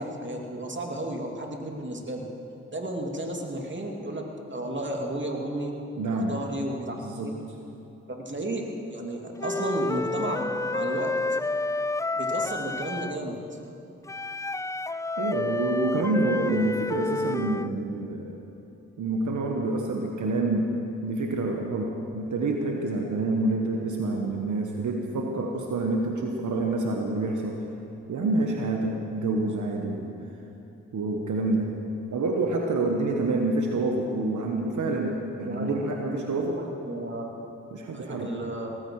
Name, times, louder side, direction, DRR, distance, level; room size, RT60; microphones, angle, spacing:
voice 1, 0.0-2.3 2.7-5.7 6.1-7.4 8.2-11.1 12.2-13.4 35.4-35.9 36.4-37.3 37.9-38.7, right 1 dB, 40° right, 1 dB, 2.7 m, -33 dB
voice 2, 6.0-6.4 7.0-7.3 15.2-18.4 19.0-20.7 21.0-27.6 28.1-30.2 30.9-31.7 32.1-36.6 37.7-38.3, right 2 dB, 80° right, 1 dB, 1.2 m, -27 dB
Wind instrument woodwind instrument, 9.4-13.2 14.1-17.7, left 2 dB, 10° left, 0.3 m, -30 dB
18.0 x 15.0 x 4.8 m, 2.9 s
cardioid pair, 40°, 29 cm